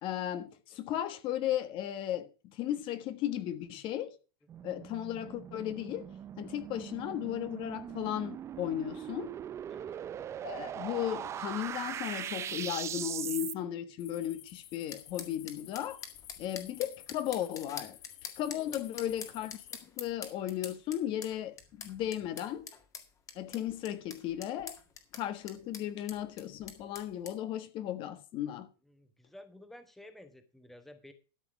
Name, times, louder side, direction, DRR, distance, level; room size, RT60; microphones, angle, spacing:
voice 1, 0.0-4.2 4.6-9.3 10.4-16.0 16.4-19.6 20.0-22.7 23.3-24.8 25.1-28.7, left 11 dB, 40° left, 1.4 m, -36 dB
sound 1, 4.5-13.5, right 9 dB, 20° right, 0.4 m, -40 dB
sound 2, 14.0-19.8, left 13 dB, 60° left, 1.7 m, -53 dB
sound 3, 14.9-27.3, left 6 dB, 25° left, 1.9 m, -46 dB
voice 2, 28.9-31.1, left 1 dB, ahead, 1.2 m, -53 dB
12.5 x 6.1 x 5.9 m
supercardioid pair, 140°, 13 cm